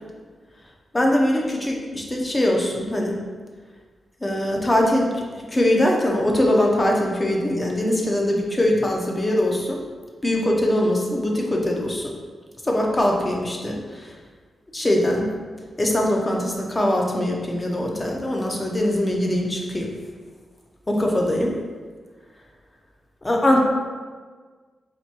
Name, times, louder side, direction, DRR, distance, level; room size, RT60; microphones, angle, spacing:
voice 1, 0.9-3.2 4.2-5.2 5.5-9.8 10.2-12.1 12.6-14.1 14.7-15.3 15.8-19.9 20.9-21.5 23.2-23.6, left 1 dB, 15° left, 0 dB, 0.5 m, -22 dB
3.3 x 2.9 x 4.5 m, 1.5 s
wide cardioid pair, 175°, 0 cm